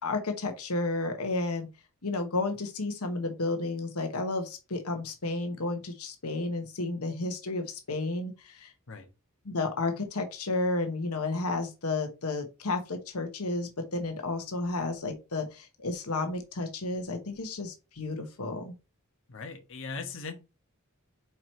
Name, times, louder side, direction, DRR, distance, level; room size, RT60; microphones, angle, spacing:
voice 1, 0.0-1.7 2.0-8.7 9.4-18.7, left 2 dB, 85° left, 5 dB, 1.1 m, -32 dB
voice 2, 19.3-20.3, left 4 dB, 60° left, 4 dB, 1.2 m, -39 dB
4.8 x 4.5 x 4.4 m, 0.28 s
head